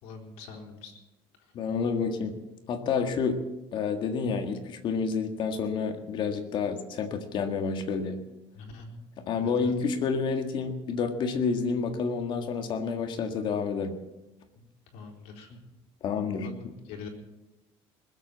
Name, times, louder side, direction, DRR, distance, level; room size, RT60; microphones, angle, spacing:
voice 1, 0.0-1.0 8.5-9.0 9.4-9.7 14.6-14.7 14.9-15.5 16.3-16.5 16.9-17.1, left 4 dB, 75° left, 0 dB, 3.9 m, -43 dB
voice 2, 1.5-2.3 2.7-3.4 3.7-8.2 9.2-14.0 16.0-16.7, left 5 dB, 45° left, 6 dB, 1.7 m, -29 dB
20.5 x 8.0 x 8.4 m, 1.0 s
cardioid pair, 160°, 11 cm